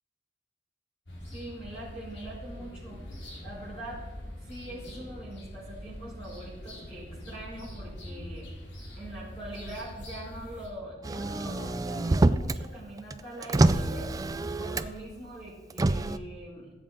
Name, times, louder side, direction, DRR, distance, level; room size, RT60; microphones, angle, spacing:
sound 1, 1.1-10.7, equal, 90° left, 2.6 m, -43 dB
voice 1, 1.3-3.0 3.4-4.0 4.4-8.5 9.0-14.1 14.5-16.7, right 1 dB, 30° left, -9 dB, 3.8 m, -42 dB
Motor vehicle (road), 11.0-12.6 13.0-15.1 15.7-16.2, right 2 dB, 20° right, 0.3 m, -26 dB
15.0 x 7.7 x 3.9 m, 1.2 s
head